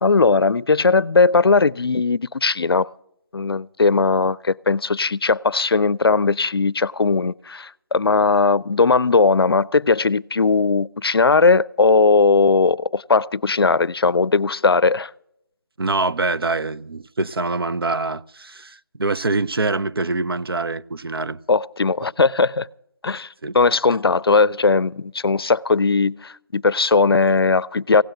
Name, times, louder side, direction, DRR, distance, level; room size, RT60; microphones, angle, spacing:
voice 1, 0.0-2.9 3.3-15.1 21.5-22.7 23.0-23.3 23.5-28.0, left 4 dB, 90° left, 0.4 m, -18 dB
voice 2, 15.8-21.4 23.4-23.5, right 3 dB, 80° right, 0.5 m, -24 dB
16.0 x 8.8 x 7.8 m
figure-of-eight pair, 180°, 12 cm